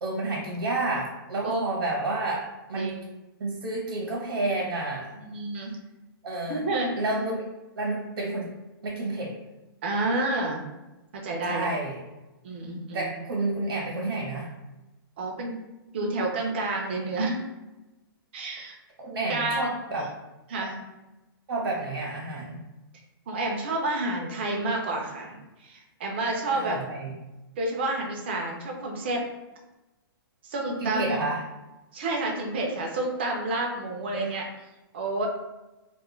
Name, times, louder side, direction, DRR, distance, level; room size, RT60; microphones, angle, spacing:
voice 1, 0.0-3.0 3.4-5.1 6.2-6.6 7.0-7.4 7.8-8.5 8.8-9.3 11.4-12.0 12.7-14.5 19.0-20.1 21.5-22.6 26.5-27.1 30.8-31.4 34.1-34.4, right 2 dB, 80° right, -3 dB, 0.8 m, -30 dB
voice 2, 2.7-3.1 5.2-5.8 6.5-6.9 9.8-10.6 11.1-11.7 12.4-13.1 15.2-15.5 15.9-17.4 18.3-18.7 19.3-19.8 20.5-20.8 23.3-26.8 27.6-29.2 30.5-31.2 31.9-34.4 34.9-35.3, right 2 dB, 30° right, 0 dB, 0.4 m, -29 dB
2.2 x 2.1 x 3.0 m, 1.0 s
hypercardioid pair, 180°, 13 cm